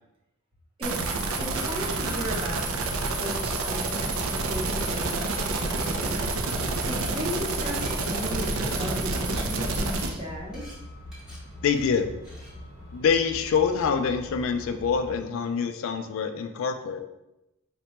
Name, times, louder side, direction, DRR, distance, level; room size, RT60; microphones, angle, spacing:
voice 1, 0.8-2.7 3.2-10.7, equal, 25° right, -2 dB, 0.7 m, -36 dB
sound 1, 0.8-10.1, right 3 dB, 85° right, 0.4 m, -28 dB
Truck, 1.9-15.2, left 1 dB, 70° right, 1.0 m, -42 dB
Glass, 6.2-6.3 6.8-9.0 9.3-9.6 10.0-10.2 10.5-10.8 11.1-11.4 11.8-12.0 12.2-12.5, equal, 5° right, 0.9 m, -49 dB
voice 2, 11.6-12.1 12.9-17.0, left 6 dB, 70° left, 6 dB, 0.3 m, -25 dB
4.1 x 2.1 x 2.9 m, 0.92 s
head